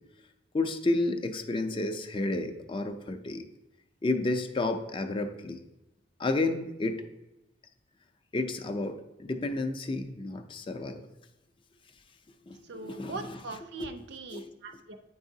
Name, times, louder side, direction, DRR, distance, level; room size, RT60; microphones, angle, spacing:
voice 1, 0.5-3.4 4.0-5.6 6.2-7.0 8.3-11.1 12.5-13.2 13.8-13.9 14.3-14.4, left 2 dB, 25° left, 7 dB, 0.4 m, -31 dB
voice 2, 12.6-15.0, right 3 dB, 60° right, 7 dB, 0.5 m, -41 dB
8.6 x 4.7 x 2.7 m, 0.94 s
head